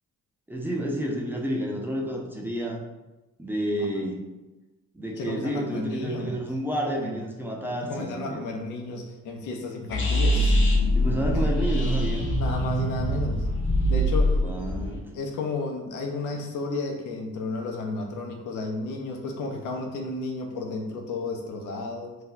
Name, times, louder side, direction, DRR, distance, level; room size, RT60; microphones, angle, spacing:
voice 1, 0.5-2.8 3.4-4.2 4.9-8.5 10.9-12.3 14.4-15.0, equal, 5° right, -2 dB, 0.5 m, -30 dB
voice 2, 5.2-6.4 6.8-7.2 7.8-10.6 11.3-11.5 12.4-13.5 13.9-14.4 15.1-22.2, left 3 dB, 85° left, 3 dB, 0.6 m, -33 dB
sound 1, 9.9-15.0, equal, 40° left, 0.7 m, -23 dB
2.7 x 2.2 x 3.8 m, 1.1 s
cardioid pair, 90°, 30 cm